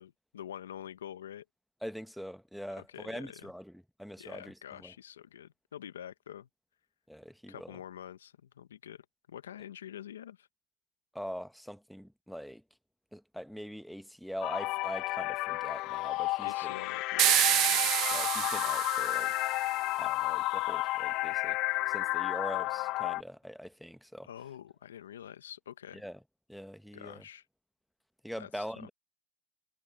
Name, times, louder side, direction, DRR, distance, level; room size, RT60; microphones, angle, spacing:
voice 1, 0.0-1.4 2.8-3.5 4.2-6.5 7.5-10.5 16.4-17.9 24.2-26.0 26.9-27.4 28.4-28.9, left 10 dB, 85° left, 1.2 m, -46 dB
voice 2, 1.8-4.9 7.1-7.7 11.1-12.6 13.1-16.7 18.1-19.5 20.0-21.6 21.9-24.3 25.9-26.2 26.5-27.2 28.2-28.9, equal, ahead, 1.4 m, -43 dB
sound 1, 14.4-23.2, left 20 dB, 60° left, 0.3 m, -32 dB
sound 2, 17.2-19.6, right 16 dB, 55° right, 0.4 m, -28 dB
hypercardioid pair, 80°, 0 cm